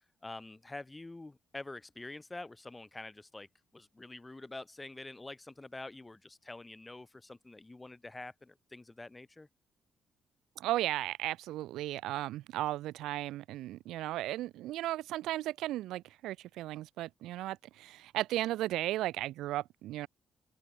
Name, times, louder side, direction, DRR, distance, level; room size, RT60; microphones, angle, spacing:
voice 1, 0.2-3.5 3.7-9.5, left 2 dB, 15° left, 5.5 m, -46 dB
voice 2, 10.6-20.1, right 15 dB, 90° right, 1.3 m, -35 dB
open air
cardioid pair, 90°, 0 cm